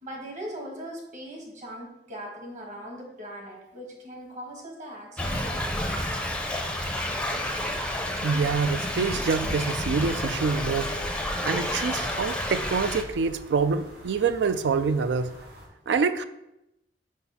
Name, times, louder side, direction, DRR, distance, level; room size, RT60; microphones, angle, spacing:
voice 1, 0.0-6.1, equal, 45° right, 0 dB, 1.5 m, -40 dB
Thunder / Rain, 5.2-13.0, left 1 dB, 5° left, 0.5 m, -30 dB
voice 2, 8.2-11.0 11.5-15.3 15.9-16.2, right 5 dB, 85° right, 12 dB, 0.4 m, -26 dB
sound 1, 9.4-15.7, equal, 60° right, 1.5 m, -46 dB
5.0 x 4.3 x 5.5 m, 0.88 s
head